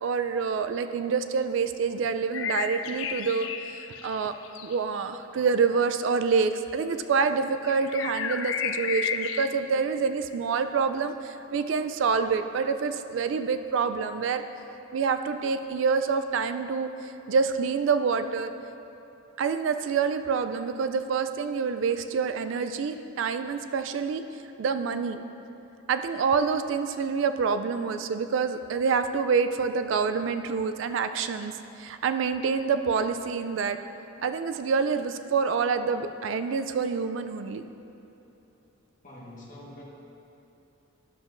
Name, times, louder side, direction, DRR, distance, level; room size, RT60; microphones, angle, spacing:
voice 1, 0.0-4.3 4.6-14.4 14.9-18.5 19.4-24.2 24.6-25.2 25.9-31.5 31.8-33.8 34.2-37.6, right 5 dB, 70° right, 9 dB, 0.3 m, -27 dB
sound 1, 2.3-4.8 7.6-9.5, left 7 dB, 70° left, 0.4 m, -32 dB
voice 2, 39.0-39.8, left 1 dB, 40° left, -4 dB, 1.3 m, -45 dB
11.5 x 7.0 x 2.5 m, 2.9 s
head